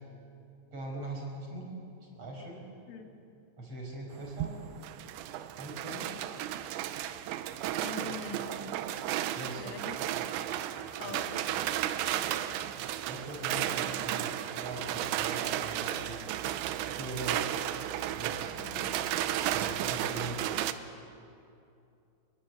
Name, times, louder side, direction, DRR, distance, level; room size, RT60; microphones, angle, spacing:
voice 1, 0.7-1.7 2.0-2.6 3.6-4.5 5.6-6.1 9.3-9.9 11.0-11.2 13.1-16.4 16.9-17.4 18.1-18.7 19.5-20.6, right 1 dB, 30° right, 0 dB, 5.8 m, -41 dB
sound 1, 4.1-20.7, right 12 dB, 80° right, 3.0 m, -34 dB
voice 2, 7.8-8.7 9.6-10.2 11.0-12.7 18.6-19.0 20.2-20.3, left 5 dB, 85° left, 3 dB, 4.6 m, -45 dB
28.0 x 21.5 x 8.1 m, 2.6 s
omnidirectional pair, 5.4 m